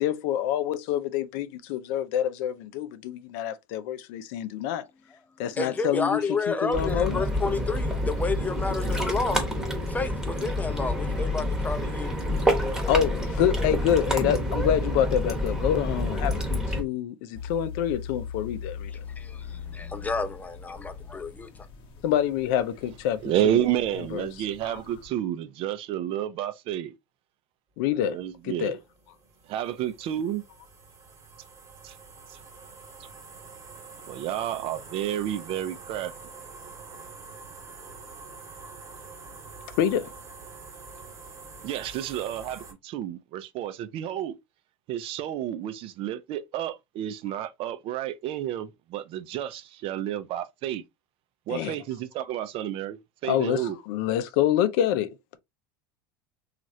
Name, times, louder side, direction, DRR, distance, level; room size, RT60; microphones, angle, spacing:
voice 1, 0.0-4.9 5.4-6.2 6.5-7.2 12.9-18.9 22.0-23.6 24.1-24.3 24.6-24.8 27.8-28.2 28.4-28.8 39.8-40.1 51.5-51.7 53.2-55.4, left 10 dB, 65° left, 0.5 m, -27 dB
voice 2, 5.5-9.5 9.9-12.3 12.6-12.7 19.2-21.5, left 3 dB, 15° left, 0.5 m, -31 dB
Ocean, 6.7-16.8, left 1 dB, 5° right, 1.0 m, -28 dB
sound 1, 17.3-25.1, left 7 dB, 45° left, 0.9 m, -41 dB
voice 3, 23.2-26.9 28.0-28.8 29.5-30.4 31.8-31.9 34.1-36.1 41.6-44.3 44.9-50.8 51.5-53.8, right 11 dB, 50° right, 0.5 m, -30 dB
sound 2, 28.3-42.7, right 4 dB, 25° right, 1.2 m, -46 dB
3.0 x 2.4 x 2.6 m
supercardioid pair, 105°, 12 cm